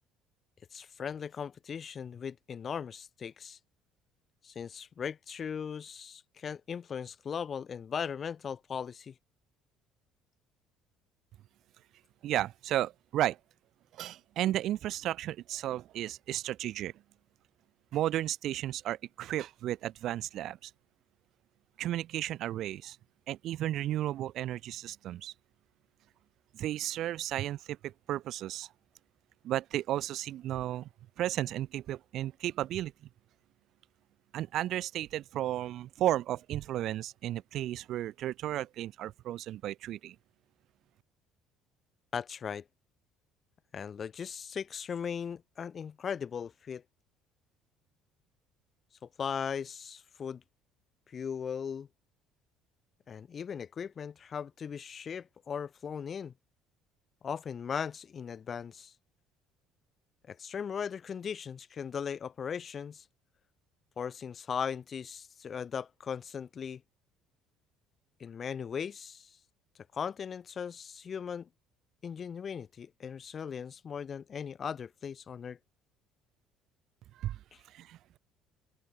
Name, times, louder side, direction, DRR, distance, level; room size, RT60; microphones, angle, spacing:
voice 1, 0.7-3.6 4.4-9.1 42.1-42.6 43.7-46.8 49.0-50.4 51.1-51.9 53.1-56.3 57.2-58.9 60.3-63.0 64.0-66.8 68.2-69.3 69.9-71.5 72.0-75.6 77.5-77.6, left 7 dB, 35° left, 0.8 m, -38 dB
voice 2, 12.2-13.4 13.9-16.9 17.9-20.7 21.8-23.0 23.3-25.3 26.5-28.7 29.4-30.9 31.2-32.9 34.3-40.2 77.2-77.4 77.7-78.2, right 13 dB, 55° right, 0.3 m, -33 dB
cardioid pair, 135°, 0 cm